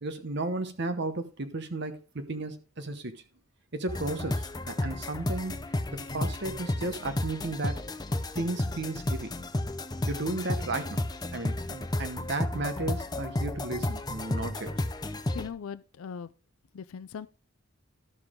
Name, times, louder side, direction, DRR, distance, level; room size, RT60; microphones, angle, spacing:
voice 1, 0.0-3.1 3.7-5.6 5.9-7.8 8.3-9.3 10.1-11.0 11.3-14.7, right 2 dB, 55° right, 1.0 m, -34 dB
sound 1, 3.9-15.5, left 1 dB, 20° left, 0.6 m, -32 dB
voice 2, 15.3-16.3 16.7-17.3, left 6 dB, 80° left, 0.4 m, -39 dB
12.0 x 7.0 x 3.7 m
head